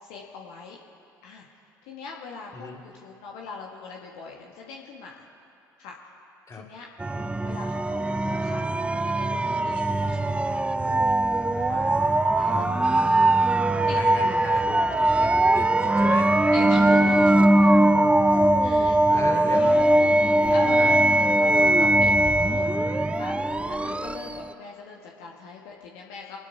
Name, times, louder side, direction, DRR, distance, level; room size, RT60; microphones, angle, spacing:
voice 1, 0.0-0.8 1.2-5.2 5.8-6.0 6.5-6.9 7.4-10.4 10.7-11.2 12.3-12.6 13.9-14.0 14.5-14.6 16.5-17.2 17.6-17.7 18.6-19.9 20.5-21.0 21.4-22.9 23.1-26.4, left 4 dB, 65° left, -1 dB, 1.3 m, -41 dB
sound 1, 7.0-24.5, right 1 dB, 10° right, 0.5 m, -21 dB
voice 2, 11.7-12.4 12.7-13.2 13.5-16.3 16.9-17.5 19.1-19.9 20.8-20.9 23.8-24.0, left 4 dB, 30° left, 1 dB, 2.2 m, -38 dB
24.5 x 12.0 x 2.8 m, 2.7 s
figure-of-eight pair, 55°, 11 cm